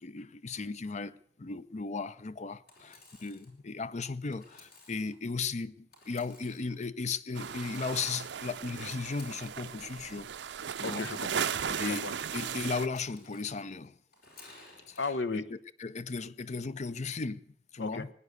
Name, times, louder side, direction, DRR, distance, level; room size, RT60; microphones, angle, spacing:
voice 1, 0.0-10.3 10.8-11.1 11.8-14.0 14.9-15.0 15.3-17.5 17.7-18.1, left 4 dB, 40° left, 0.6 m, -36 dB
Engine / Sawing, 2.7-3.5 4.3-5.1 5.9-6.7 7.5-8.3 9.0-9.7 10.8-11.6 12.7-13.5 14.1-15.1, left 2 dB, 55° left, 4.6 m, -56 dB
sound 1, 7.3-12.9, right 7 dB, 70° right, 0.6 m, -36 dB
voice 2, 10.8-12.1 15.0-15.4 17.8-18.1, left 3 dB, 75° left, 1.0 m, -35 dB
18.5 x 9.6 x 8.1 m
head